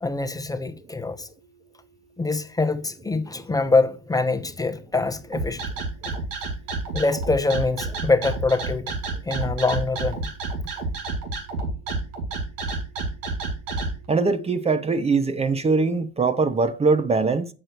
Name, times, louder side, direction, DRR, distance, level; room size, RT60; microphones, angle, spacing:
voice 1, 0.0-1.3 2.2-5.6 6.9-8.9 9.3-10.3, left 3 dB, 10° left, 0.9 m, -24 dB
sound 1, 5.3-13.9, right 3 dB, 75° right, 2.4 m, -29 dB
voice 2, 14.1-17.5, right 4 dB, 20° right, 0.9 m, -22 dB
7.8 x 6.4 x 4.5 m
hypercardioid pair, 80°, 29 cm